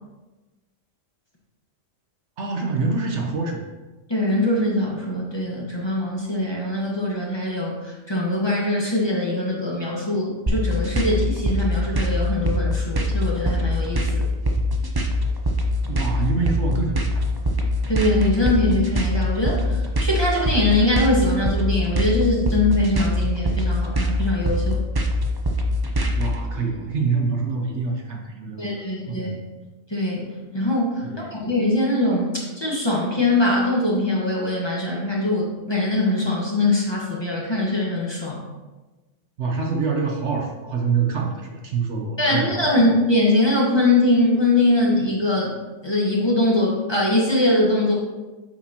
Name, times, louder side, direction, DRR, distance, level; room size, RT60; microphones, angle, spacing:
voice 1, 2.4-3.6 15.9-17.3 26.2-29.4 31.0-31.4 39.4-42.8, right 4 dB, 60° right, 1 dB, 1.1 m, -26 dB
voice 2, 4.1-14.2 17.9-24.8 28.6-29.3 29.9-30.3 30.5-38.4 42.2-45.5 45.8-47.9, left 1 dB, 20° left, -4 dB, 1.4 m, -22 dB
sound 1, 10.5-26.4, equal, 30° right, 0.4 m, -22 dB
7.8 x 6.4 x 2.9 m, 1.2 s
omnidirectional pair, 1.4 m